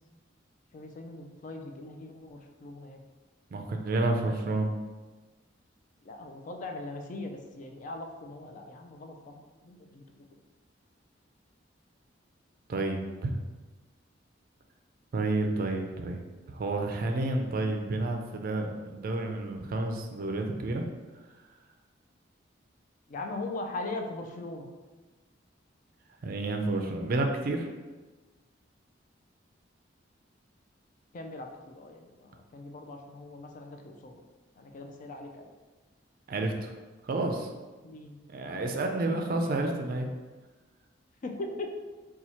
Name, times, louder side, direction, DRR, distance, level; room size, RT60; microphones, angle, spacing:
voice 1, 0.7-3.0 6.0-10.0 23.1-24.7 31.1-34.2 34.6-35.5 37.8-38.2 41.2-41.7, left 2 dB, 45° left, 3 dB, 0.4 m, -40 dB
voice 2, 3.5-4.7 12.7-13.3 15.1-16.2 16.5-20.8 26.2-27.7 36.3-36.7 37.0-37.5 38.3-40.1, right 2 dB, 50° right, 3 dB, 0.4 m, -30 dB
2.8 x 2.3 x 4.2 m, 1.2 s
head